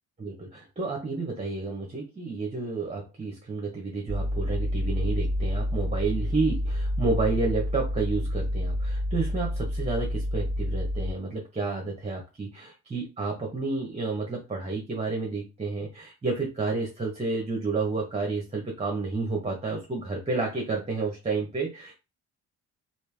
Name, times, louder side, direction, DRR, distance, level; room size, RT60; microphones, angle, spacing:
voice 1, 0.2-21.9, right 3 dB, 20° right, 0 dB, 1.0 m, -30 dB
sound 1, 4.1-11.1, left 1 dB, 30° left, 1.6 m, -28 dB
3.2 x 2.6 x 3.4 m, 0.27 s
cardioid pair, 90°, 30 cm